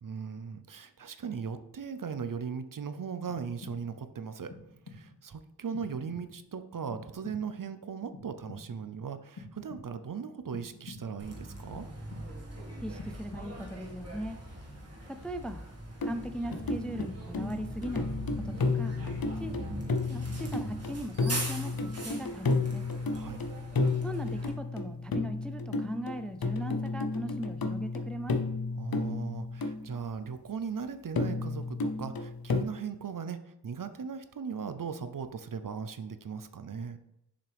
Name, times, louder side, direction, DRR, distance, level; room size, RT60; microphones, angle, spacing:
voice 1, 0.0-4.5 4.9-11.9 23.1-23.4 28.8-37.0, right 6 dB, 50° right, 11 dB, 0.6 m, -38 dB
sound 1, 3.3-4.1 4.5-5.2 5.7-6.5 6.9-7.7 8.1-8.9 9.4-10.1 10.5-11.3 11.7-12.6 13.0-13.8, left 3 dB, 90° left, 2.5 m, -49 dB
Bus, 11.2-24.5, right 1 dB, 35° right, 1.8 m, -41 dB
voice 2, 12.8-14.4 15.1-15.6 16.0-18.1 18.4-18.9 19.4-19.6 20.1-22.9 24.0-28.4, equal, ahead, 9 dB, 0.4 m, -39 dB
sound 2, 16.0-17.1 17.3-30.0 31.1-32.6, left 3 dB, 55° left, 0.7 m, -32 dB
7.0 x 5.7 x 3.4 m, 0.83 s
wide cardioid pair, 75°, 42 cm